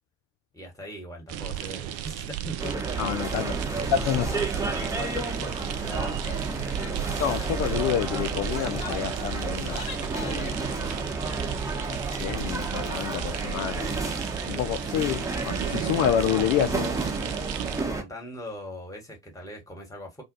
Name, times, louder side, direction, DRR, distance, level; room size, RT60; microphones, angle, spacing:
voice 1, 0.5-3.0 3.4-3.9 4.5-6.2 6.6-7.1 17.8-20.2, equal, 10° left, 1.4 m, -41 dB
sound 1, 1.3-17.8, right 12 dB, 40° right, 0.4 m, -36 dB
sound 2, 2.6-18.0, right 3 dB, 10° right, 0.9 m, -31 dB
voice 2, 3.0-3.5 3.9-4.4 7.2-11.1 11.9-13.9 14.5-16.9, left 10 dB, 45° left, 0.4 m, -28 dB
Female speech woman speaking / Yell, 6.2-6.5 6.8-7.0 7.2-7.6 8.3-10.7, left 6 dB, 85° left, 0.8 m, -41 dB
2.5 x 2.3 x 3.9 m
figure-of-eight pair, 60°, 40 cm